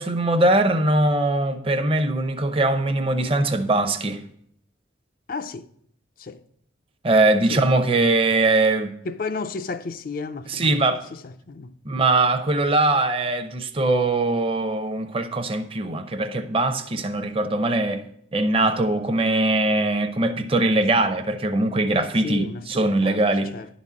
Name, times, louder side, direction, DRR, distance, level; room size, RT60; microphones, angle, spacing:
voice 1, 0.0-4.2 7.0-8.9 10.5-11.0 11.8-18.0 18.3-23.5, right 2 dB, 30° right, 0.7 m, -21 dB
voice 2, 5.3-5.7 6.2-6.4 7.5-7.6 9.0-10.8 11.2-11.7 22.2-23.2 23.5-23.7, left 4 dB, 50° left, 0.5 m, -33 dB
11.0 x 4.1 x 7.3 m
head